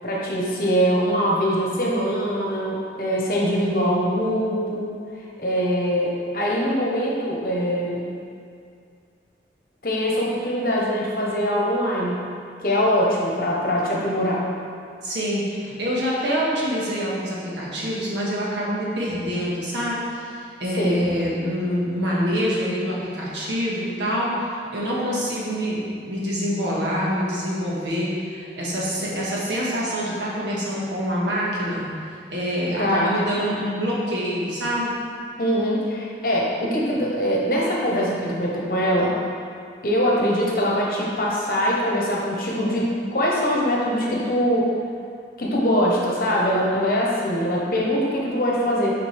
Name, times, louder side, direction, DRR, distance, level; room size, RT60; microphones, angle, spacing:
voice 1, 0.0-4.9 5.4-8.0 9.8-12.2 12.6-14.5 20.8-21.1 32.8-33.1 35.4-39.1 39.8-44.7 45.4-48.9, equal, 55° left, -3 dB, 1.0 m, -22 dB
voice 2, 15.0-24.3 24.7-31.8 32.3-34.9, equal, 80° right, -6 dB, 1.5 m, -26 dB
6.5 x 5.1 x 3.4 m, 2.3 s
head